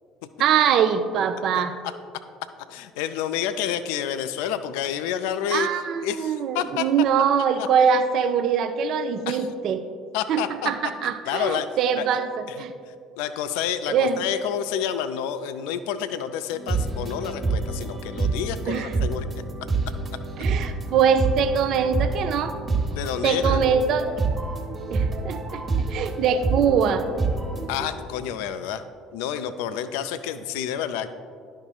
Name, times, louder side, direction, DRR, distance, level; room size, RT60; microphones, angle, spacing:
voice 1, 0.4-1.7 5.5-9.8 10.3-12.7 13.9-14.2 18.7-19.0 20.4-22.5 23.2-24.0 24.9-27.0, right 7 dB, 55° right, 8 dB, 0.4 m, -23 dB
voice 2, 2.7-5.7 6.0-7.0 7.6-7.7 9.3-9.5 10.1-10.7 11.0-11.7 12.0-12.1 12.5-12.6 13.2-19.3 22.9-23.7 27.7-28.8 29.1-31.1, left 9 dB, 65° left, 11 dB, 0.3 m, -29 dB
sound 1, 16.5-27.9, right 3 dB, 30° right, 1.0 m, -27 dB
11.0 x 5.5 x 2.4 m, 2.2 s
figure-of-eight pair, 60°, 0 cm